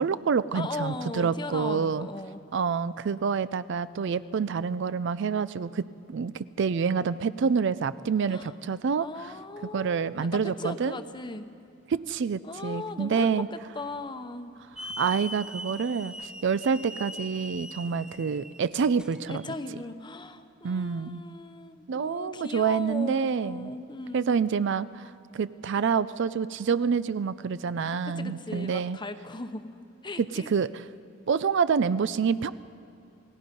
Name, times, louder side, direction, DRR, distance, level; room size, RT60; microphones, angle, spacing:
voice 1, 0.0-2.1 2.5-9.1 9.7-10.9 11.9-13.5 14.8-16.1 16.4-19.4 20.6-21.2 21.9-23.7 24.1-29.0 30.2-30.8 31.3-32.5, right 6 dB, 60° right, 16 dB, 0.4 m, -27 dB
voice 2, 0.5-2.4 8.3-8.5 9.0-11.5 12.4-14.5 19.3-24.3 28.0-30.5, left 2 dB, 25° left, 8 dB, 0.9 m, -38 dB
Hiss / Alarm, 14.8-19.6, equal, 5° right, 0.5 m, -41 dB
28.5 x 17.5 x 5.3 m, 2.6 s
head